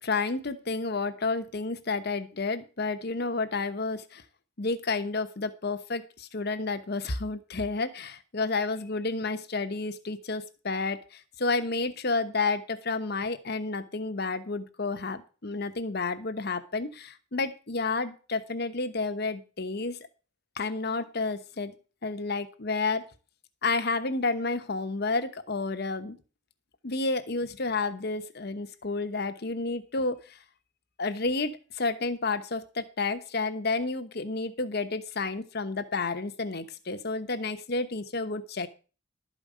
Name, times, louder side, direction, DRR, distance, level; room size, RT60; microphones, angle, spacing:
voice 1, 0.0-4.2 4.6-20.0 20.6-21.7 22.0-23.0 23.6-26.2 26.8-30.4 31.0-38.7, left 3 dB, 55° left, 10 dB, 1.1 m, -30 dB
12.5 x 5.3 x 7.5 m, 0.36 s
head